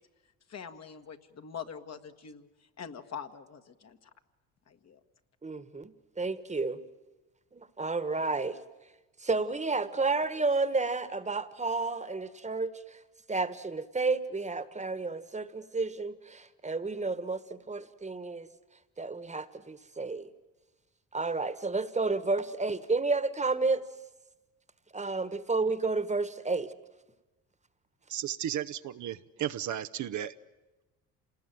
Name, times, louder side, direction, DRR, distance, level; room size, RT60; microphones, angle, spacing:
voice 1, 0.5-4.1 4.7-5.0, left 7 dB, 50° left, 6 dB, 1.7 m, -44 dB
voice 2, 5.4-6.8 7.5-8.6 9.2-12.7 13.3-18.5 19.0-20.3 21.1-23.8 24.9-26.7, right 3 dB, 20° right, 13 dB, 1.5 m, -31 dB
voice 3, 28.1-30.3, right 11 dB, 60° right, 10 dB, 0.9 m, -34 dB
27.5 x 19.5 x 9.2 m, 1.1 s
supercardioid pair, 70°, 34 cm